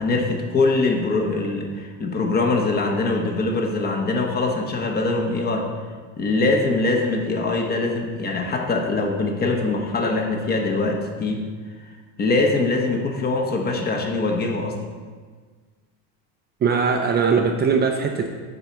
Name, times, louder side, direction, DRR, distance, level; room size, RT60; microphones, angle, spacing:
voice 1, 0.0-5.7 6.2-11.5 12.2-14.8, left 3 dB, 25° left, 2 dB, 1.1 m, -23 dB
voice 2, 16.6-18.3, right 5 dB, 25° right, 3 dB, 0.6 m, -20 dB
9.5 x 4.4 x 6.9 m, 1.5 s
cardioid pair, 150°, 37 cm